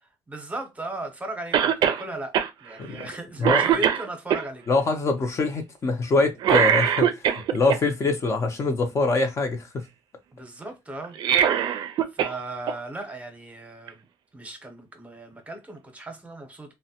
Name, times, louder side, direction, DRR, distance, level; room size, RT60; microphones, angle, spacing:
voice 1, 0.3-2.3 2.6-4.6 10.3-11.2 11.5-11.8 12.1-14.0 14.3-16.7, right 2 dB, 20° right, 0.7 m, -37 dB
Cough, 1.5-2.0 2.3-2.5 3.0-3.2 3.4-4.4 6.4-7.8 11.0-12.4 12.7-12.8 13.9-14.0, right 9 dB, 80° right, 0.4 m, -21 dB
voice 2, 4.7-9.8, left 3 dB, 40° left, 0.6 m, -24 dB
3.2 x 2.1 x 2.8 m
cardioid pair, 115°, 7 cm